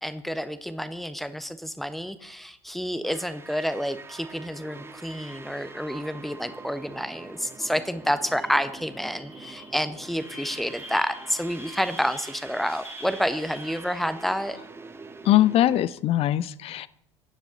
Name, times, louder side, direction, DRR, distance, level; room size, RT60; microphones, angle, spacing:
voice 1, 0.0-14.6, equal, ahead, 12 dB, 1.2 m, -29 dB
sound 1, 3.0-15.9, right 3 dB, 15° right, 1.9 m, -45 dB
sound 2, 7.6-7.7 8.0-14.4, left 1 dB, 85° left, 4.8 m, -46 dB
voice 2, 15.3-16.9, left 13 dB, 40° left, 19 dB, 0.7 m, -21 dB
25.0 x 9.9 x 3.9 m, 0.74 s
figure-of-eight pair, 70°, 16 cm